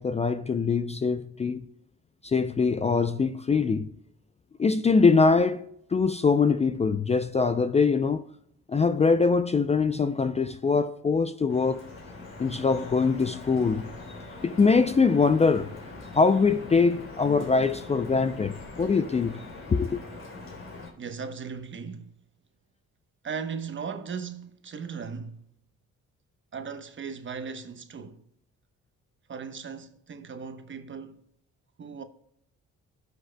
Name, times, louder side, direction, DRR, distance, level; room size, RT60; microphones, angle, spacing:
voice 1, 0.0-1.6 2.2-3.9 4.6-5.6 5.9-8.2 8.7-11.8 12.4-13.9 14.4-15.8 16.2-19.4 19.7-20.0, left 4 dB, 20° left, 0.4 m, -23 dB
Drip, 11.5-20.9, left 3 dB, 45° left, 3.2 m, -43 dB
voice 2, 21.0-22.1 23.2-25.4 26.5-28.2 29.3-31.2 31.8-32.0, right 6 dB, 40° right, 1.0 m, -37 dB
16.0 x 6.3 x 2.2 m
cardioid pair, 90°, 30 cm